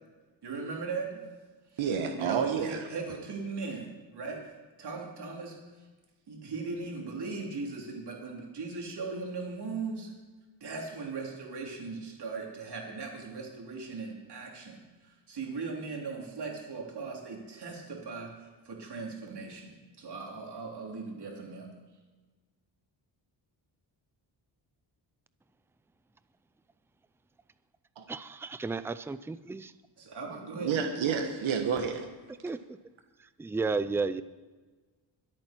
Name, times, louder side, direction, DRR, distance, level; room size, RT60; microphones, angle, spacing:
voice 1, 0.4-1.2 2.1-5.9 6.3-10.1 10.6-21.7 30.0-30.7, right 4 dB, 60° right, -1 dB, 3.5 m, -38 dB
voice 2, 1.8-2.8 28.0-28.1 30.6-32.1, right 6 dB, 80° right, 4 dB, 1.4 m, -29 dB
voice 3, 28.1-29.7 32.4-32.8 33.4-34.2, right 4 dB, 5° right, 13 dB, 0.3 m, -33 dB
23.5 x 8.7 x 4.5 m, 1.3 s
wide cardioid pair, 140°, 46 cm